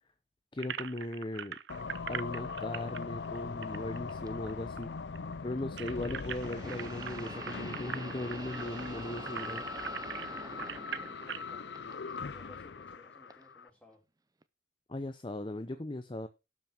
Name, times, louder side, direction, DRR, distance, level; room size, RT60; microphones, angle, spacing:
voice 1, 0.5-1.6 2.1-4.9 5.4-9.6 14.9-16.3, left 1 dB, 30° left, 0.7 m, -38 dB
sound 1, 0.6-4.5 4.8-4.9 5.2-11.5, right 8 dB, 80° right, 0.7 m, -42 dB
sound 2, 1.7-13.7, left 4 dB, 80° left, 0.6 m, -41 dB
sound 3, 4.3-4.4 6.4-11.4 11.7-12.5 13.3-13.4 14.4-14.5, right 3 dB, 20° right, 0.6 m, -46 dB
voice 2, 10.6-14.0, left 1 dB, 5° left, 4.1 m, -58 dB
12.5 x 5.8 x 5.9 m
head